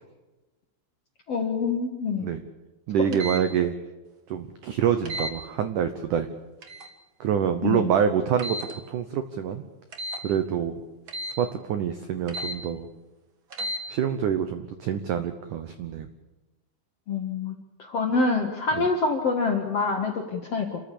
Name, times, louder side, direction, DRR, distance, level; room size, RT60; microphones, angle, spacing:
voice 1, 1.3-2.3 3.0-3.1 7.6-7.8 17.1-17.6 17.9-20.8, left 4 dB, 60° left, 3 dB, 1.7 m, -26 dB
voice 2, 2.9-3.7 4.3-6.3 7.2-9.6 10.2-10.8 11.4-12.9 13.9-16.1 18.7-18.9, right 8 dB, 85° right, 9 dB, 1.8 m, -26 dB
sound 1, 3.1-3.4 5.1-5.3 6.6-6.9 8.4-8.7 9.9-10.2 11.1-11.4 12.3-12.6 13.5-13.8, equal, 60° right, 1.3 m, -33 dB
28.0 x 14.0 x 8.5 m, 1.1 s
omnidirectional pair, 5.2 m